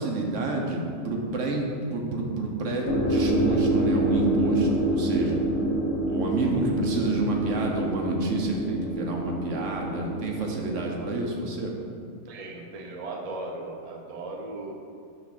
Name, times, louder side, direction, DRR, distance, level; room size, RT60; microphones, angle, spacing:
voice 1, 0.0-5.4 6.0-11.7, right 2 dB, 70° right, 0 dB, 1.1 m, -29 dB
sound 1, 2.8-11.0, right 1 dB, 65° left, 1.2 m, -27 dB
voice 2, 12.3-14.8, right 2 dB, 40° right, 0 dB, 0.5 m, -37 dB
5.6 x 3.5 x 5.8 m, 2.3 s
omnidirectional pair, 1.4 m